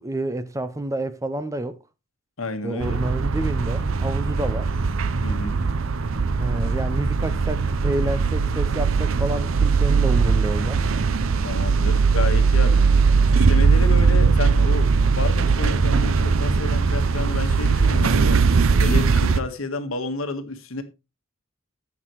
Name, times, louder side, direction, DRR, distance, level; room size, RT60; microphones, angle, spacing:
voice 1, 0.0-1.8 2.6-4.7 6.4-10.9, right 1 dB, 15° right, 0.6 m, -29 dB
voice 2, 2.4-3.0 5.2-5.6 11.4-12.8 13.3-18.4 18.8-20.8, left 3 dB, 75° left, 1.4 m, -30 dB
sound 1, 2.8-19.4, right 5 dB, 70° right, 0.6 m, -20 dB
16.0 x 5.9 x 3.0 m
head